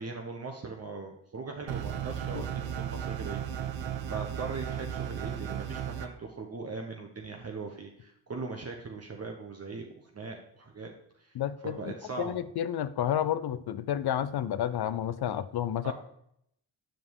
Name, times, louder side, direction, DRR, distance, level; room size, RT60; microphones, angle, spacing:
voice 1, 0.0-11.4 11.6-12.4 15.8-15.9, right 4 dB, 35° right, 1 dB, 1.0 m, -40 dB
sound 1, 1.7-6.1, right 9 dB, 85° right, 0.8 m, -35 dB
voice 2, 11.3-11.8 12.2-15.9, left 10 dB, 60° left, 15 dB, 0.6 m, -30 dB
7.6 x 5.2 x 4.7 m, 0.73 s
cardioid pair, 70°, 44 cm